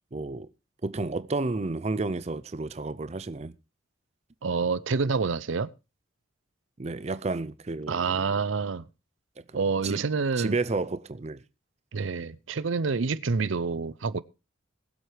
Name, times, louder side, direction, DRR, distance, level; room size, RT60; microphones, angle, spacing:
voice 1, 0.1-0.5 0.8-3.5 6.8-8.2 9.5-10.0 10.4-11.4, right 3 dB, 35° right, 0.5 m, -31 dB
voice 2, 4.4-5.7 7.9-8.8 9.5-10.6 11.9-14.2, right 4 dB, 75° right, 0.6 m, -27 dB
21.0 x 7.8 x 3.3 m
head